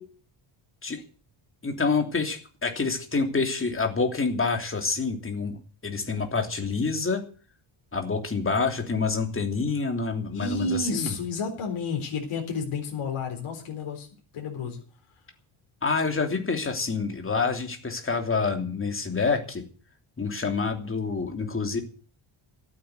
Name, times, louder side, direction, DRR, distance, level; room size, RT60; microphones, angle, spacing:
voice 1, 1.6-7.2 7.9-11.1 15.8-19.6 20.2-21.8, left 4 dB, 25° left, 5 dB, 3.0 m, -27 dB
voice 2, 10.3-14.1 14.3-14.8, left 3 dB, 75° left, 1 dB, 4.2 m, -31 dB
14.5 x 9.1 x 8.1 m, 0.39 s
cardioid pair, 120°, 49 cm